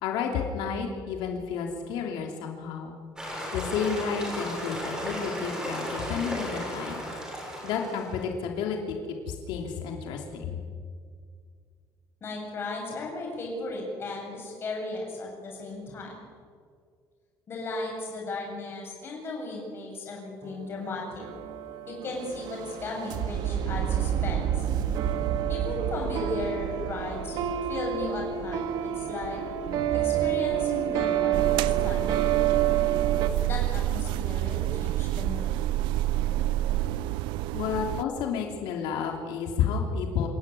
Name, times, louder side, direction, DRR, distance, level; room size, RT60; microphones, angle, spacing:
voice 1, 0.0-2.9 3.5-7.1 7.6-8.9 9.3-10.6 37.5-40.3, left 6 dB, 75° left, 2 dB, 3.0 m, -31 dB
sound 1, 3.2-8.2, equal, 10° right, 7.4 m, -35 dB
voice 2, 12.2-16.2 17.5-21.2 21.9-24.7 25.5-27.4 27.7-29.4 29.9-32.3 33.4-35.6, left 2 dB, 30° left, -1 dB, 7.7 m, -36 dB
sound 2, 20.4-33.3, right 10 dB, 60° right, 1.5 m, -28 dB
sound 3, 31.3-38.0, right 14 dB, 85° right, 0.5 m, -28 dB
27.5 x 14.0 x 10.0 m, 2.1 s
cardioid pair, 175°, 8 cm